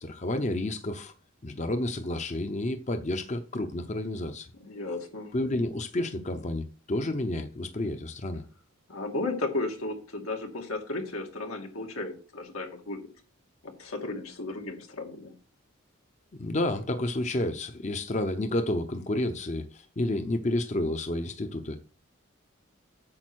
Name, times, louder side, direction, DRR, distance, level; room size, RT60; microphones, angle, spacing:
voice 1, 0.0-1.1 1.4-4.5 5.3-8.4 16.4-21.8, left 1 dB, 35° left, 0.7 m, -30 dB
voice 2, 4.6-5.3 8.9-13.0 13.6-15.3, left 2 dB, 90° left, 2.4 m, -34 dB
8.8 x 6.8 x 6.2 m
head